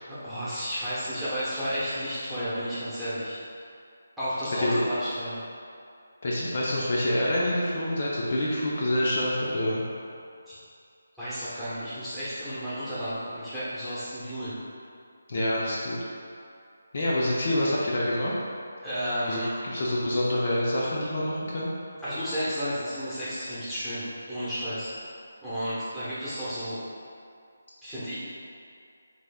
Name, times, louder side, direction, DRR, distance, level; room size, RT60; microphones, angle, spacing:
voice 1, 0.1-3.4 4.2-5.4 10.5-10.6 11.2-14.5 18.8-19.5 22.0-24.9 25.4-26.8 27.8-28.2, equal, ahead, -16 dB, 1.1 m, -32 dB
voice 2, 6.2-9.8 15.3-16.0 16.9-18.3 19.3-21.7, left 1 dB, 50° left, -6 dB, 0.6 m, -26 dB
5.0 x 3.3 x 2.3 m, 2.4 s
figure-of-eight pair, 155°, 0 cm